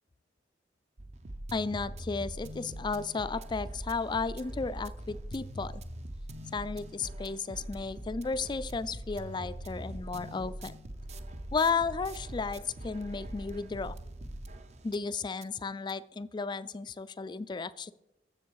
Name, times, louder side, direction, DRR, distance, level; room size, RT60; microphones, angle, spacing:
sound 1, 1.0-15.1 15.4-15.5 15.9-16.0, right 1 dB, 40° right, 0.7 m, -42 dB
voice 1, 1.5-5.8 6.5-10.7 11.5-13.9 14.8-17.9, left 4 dB, 25° left, 16 dB, 0.4 m, -34 dB
14.0 x 6.9 x 4.7 m, 0.87 s
head